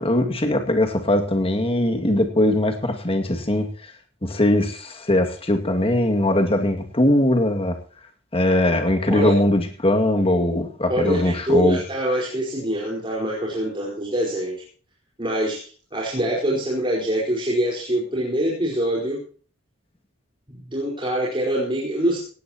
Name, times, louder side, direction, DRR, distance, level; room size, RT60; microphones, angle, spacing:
voice 1, 0.0-3.9 4.2-7.8 8.3-11.8, left 1 dB, 30° left, 4 dB, 2.3 m, -21 dB
voice 2, 10.9-14.6 15.2-19.2 20.5-22.2, right 1 dB, 25° right, -5 dB, 4.7 m, -24 dB
17.5 x 16.5 x 3.0 m, 0.41 s
head